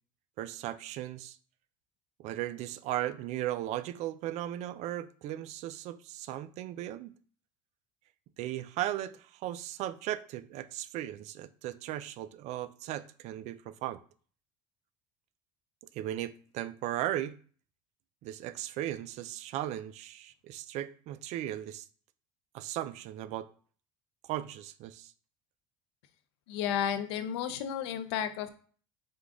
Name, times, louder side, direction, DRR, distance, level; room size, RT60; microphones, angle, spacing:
voice 1, 0.4-1.4 2.2-7.1 8.4-14.0 15.9-17.4 18.2-21.8 22.5-23.5 24.3-25.1, right 13 dB, 55° right, 0.4 m, -37 dB
voice 2, 26.5-28.5, left 9 dB, 85° left, 0.5 m, -32 dB
5.1 x 2.3 x 3.7 m
supercardioid pair, 110°, 14 cm